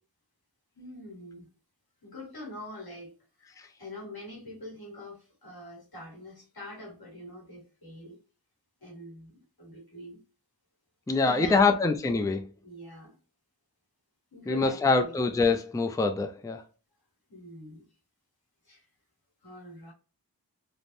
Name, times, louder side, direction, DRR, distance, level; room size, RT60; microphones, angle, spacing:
voice 1, 0.7-1.5 2.0-8.2 8.8-10.2 11.2-11.7 12.6-13.2 14.3-15.1 17.3-17.9 18.6-18.9 19.4-19.9, left 1 dB, 85° left, 1.5 m, -44 dB
voice 2, 11.1-12.5 14.5-16.6, left 3 dB, 10° left, 0.4 m, -25 dB
3.4 x 2.0 x 2.5 m
wide cardioid pair, 50°, 36 cm